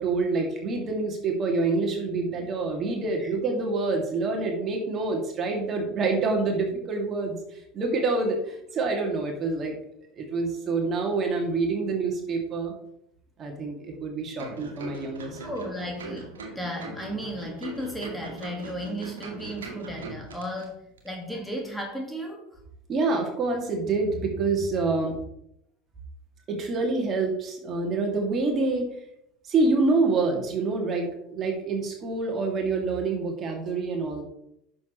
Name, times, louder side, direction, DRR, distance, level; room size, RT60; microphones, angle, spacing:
voice 1, 0.0-9.7 10.2-12.7 13.4-15.5 22.9-25.2 26.5-28.9 29.4-34.2, right 3 dB, 35° right, 1 dB, 2.4 m, -27 dB
sound 1, 14.4-20.7 21.0-21.1, right 3 dB, 75° right, 1.8 m, -41 dB
voice 2, 15.4-22.4, equal, ahead, 0 dB, 1.9 m, -35 dB
10.0 x 7.1 x 3.2 m, 0.77 s
figure-of-eight pair, 75°, 0 cm